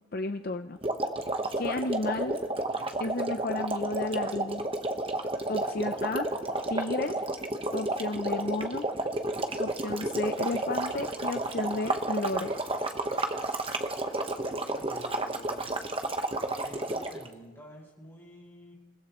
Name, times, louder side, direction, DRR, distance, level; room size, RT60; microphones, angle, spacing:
voice 1, 0.1-0.8 1.2-2.4 3.0-4.7 5.5-6.3 6.7-7.2 7.7-8.9 9.6-12.5, left 2 dB, 45° left, 7 dB, 0.5 m, -33 dB
sound 1, 0.8-17.3, right 2 dB, 25° right, 1.1 m, -31 dB
voice 2, 14.7-15.7 16.6-18.7, equal, 10° left, -4 dB, 5.4 m, -49 dB
28.5 x 16.0 x 3.1 m, 1.4 s
head